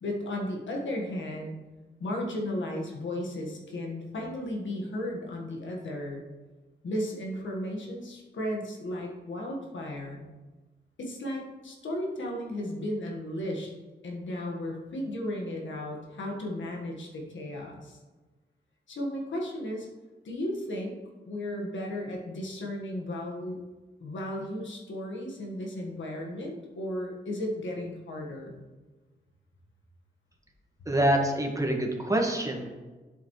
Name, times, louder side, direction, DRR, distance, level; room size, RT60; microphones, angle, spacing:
voice 1, 0.0-1.6 2.0-6.2 6.8-10.3 11.0-13.7 14.0-18.0 18.9-19.9 20.3-21.0 21.3-23.6 24.0-28.6, left 1 dB, 80° left, -1 dB, 1.6 m, -34 dB
voice 2, 30.8-32.7, right 1 dB, 15° right, 1 dB, 1.6 m, -26 dB
8.3 x 7.1 x 3.2 m, 1.2 s
cardioid pair, 60°, 19 cm